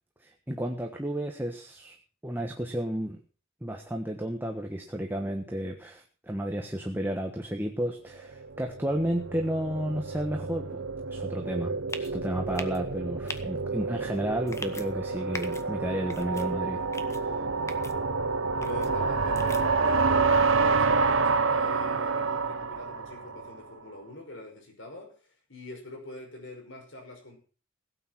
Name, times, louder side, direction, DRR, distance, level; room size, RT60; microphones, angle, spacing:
voice 1, 0.2-2.0 2.2-3.2 3.6-10.8 11.1-16.8, right 1 dB, 10° right, 3 dB, 1.3 m, -32 dB
sound 1, 8.4-23.6, right 4 dB, 80° right, 1.2 m, -28 dB
sound 2, 11.9-12.1 12.5-12.8 13.3-13.4 14.5-14.9 15.3-15.6 16.1-16.5 16.9-17.2 17.7-17.9 18.6-18.9 19.4-19.6, left 2 dB, 15° left, 1.2 m, -39 dB
voice 2, 18.6-27.4, left 1 dB, 70° left, 3 dB, 5.6 m, -43 dB
17.0 x 8.9 x 6.1 m, 0.39 s
head